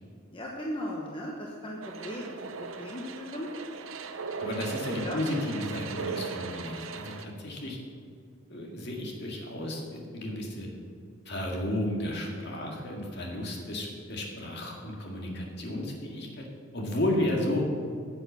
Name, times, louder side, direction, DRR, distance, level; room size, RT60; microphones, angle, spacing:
voice 1, 0.3-2.3 2.6-3.5 4.9-5.2, left 1 dB, 25° left, -2 dB, 1.0 m, -37 dB
sound 1, 1.8-7.2, right 5 dB, 70° right, 0.7 m, -38 dB
voice 2, 4.4-7.8 8.5-10.7 11.3-16.5 16.7-17.6, left 1 dB, 50° left, -1 dB, 2.0 m, -33 dB
9.7 x 8.0 x 6.8 m, 2.4 s
head